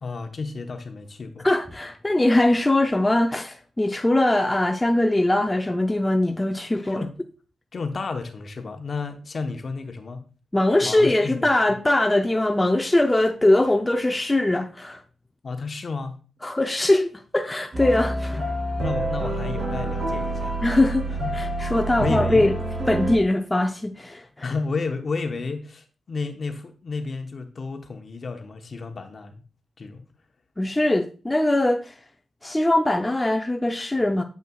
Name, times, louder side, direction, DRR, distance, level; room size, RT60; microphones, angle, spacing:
voice 1, 0.0-1.5 6.9-7.1 7.7-10.2 10.8-11.5 15.4-16.2 18.2-18.5 18.8-20.6 21.2-21.3 22.0-22.5 24.4-29.4 29.8-30.0, left 4 dB, 55° left, 1.0 m, -31 dB
voice 2, 1.4-7.1 10.5-15.0 16.4-18.4 20.6-22.5 22.9-24.2 30.6-31.9 32.4-34.2, left 1 dB, 15° left, 0.6 m, -21 dB
sound 1, 17.7-23.1, right 1 dB, 55° right, 2.6 m, -27 dB
7.7 x 5.4 x 2.3 m
cardioid pair, 60°, 0 cm